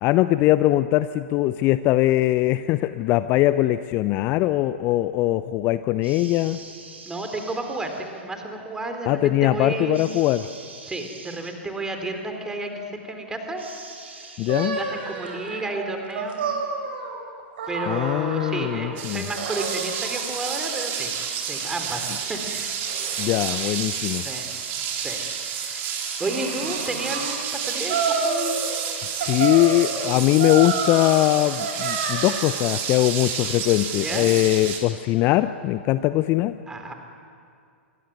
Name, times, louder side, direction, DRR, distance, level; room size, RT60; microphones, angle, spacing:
voice 1, 0.0-6.6 9.1-10.4 14.4-14.8 17.9-19.3 23.2-24.2 29.2-36.6, left 16 dB, 35° left, 13 dB, 0.7 m, -21 dB
sound 1, 6.0-8.2 9.9-11.6 13.6-14.7, right 3 dB, 70° right, 4.3 m, -44 dB
voice 2, 7.1-10.1 10.8-13.6 14.2-16.5 17.7-21.2 21.5-22.8 24.2-24.6 25.0-28.5 33.9-34.3 36.7-36.9, right 2 dB, 10° right, 5 dB, 3.9 m, -32 dB
sound 2, 14.5-18.9 19.4-20.9 21.5-22.4 22.8-23.8 24.4-27.3 27.9-28.9 29.2-32.6, right 4 dB, 55° right, 5.9 m, -31 dB
sound 3, 19.0-34.8, right 7 dB, 35° right, 4.2 m, -30 dB
27.0 x 22.5 x 9.5 m, 2.4 s
figure-of-eight pair, 100°, 7 cm